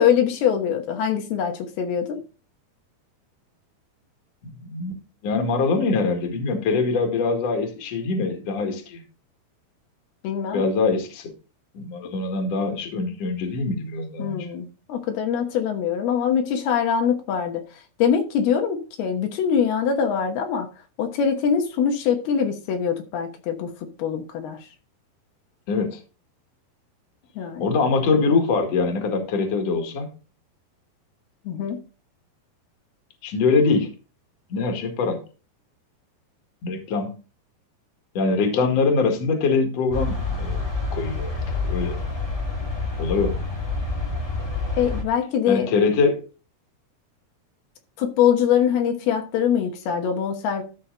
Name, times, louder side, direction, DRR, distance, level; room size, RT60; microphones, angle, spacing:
voice 1, 0.0-2.2 10.2-10.6 14.2-17.6 18.0-20.7 21.0-23.7 24.0-24.6 27.4-27.7 31.5-31.8 44.7-45.7 48.0-50.6, left 8 dB, 80° left, 3.1 m, -23 dB
voice 2, 4.4-4.9 5.2-9.0 10.5-11.3 11.7-14.5 25.7-26.0 27.6-30.1 33.2-33.9 34.5-35.2 36.6-37.2 38.1-40.6 40.9-41.4 41.6-42.0 43.0-43.3 45.5-46.2, left 4 dB, 50° left, 2.5 m, -23 dB
sound 1, 39.9-45.0, left 3 dB, 15° left, 0.7 m, -27 dB
13.0 x 6.1 x 3.9 m
omnidirectional pair, 4.5 m